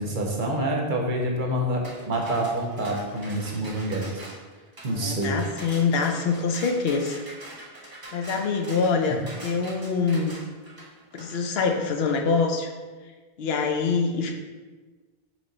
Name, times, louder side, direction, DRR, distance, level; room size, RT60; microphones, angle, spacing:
voice 1, 0.0-4.2 4.8-5.4 8.2-8.3, right 1 dB, 55° right, 0 dB, 0.8 m, -27 dB
sound 1, 1.8-12.2, right 1 dB, 25° right, 0.7 m, -44 dB
voice 2, 4.9-7.2 8.1-10.3 11.1-12.7 13.4-14.3, left 5 dB, 75° left, 3 dB, 0.8 m, -25 dB
6.1 x 2.2 x 3.9 m, 1.3 s
omnidirectional pair, 1.0 m